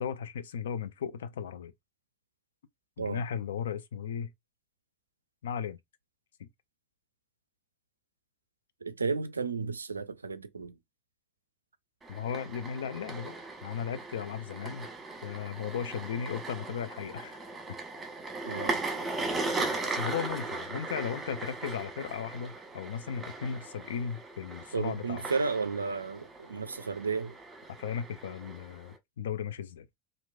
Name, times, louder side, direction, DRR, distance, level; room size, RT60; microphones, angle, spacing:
voice 1, 0.0-1.7 3.0-4.3 5.4-5.8 6.4-6.5 12.1-13.4 13.6-14.9 15.2-17.8 19.9-25.2 27.7-29.9, left 7 dB, 70° left, 0.4 m, -36 dB
voice 2, 8.8-10.8 18.4-18.8 24.7-27.3, right 4 dB, 85° right, 0.3 m, -33 dB
sound 1, 12.0-29.0, right 3 dB, 15° right, 1.2 m, -38 dB
2.9 x 2.5 x 2.3 m
figure-of-eight pair, 80°, 0 cm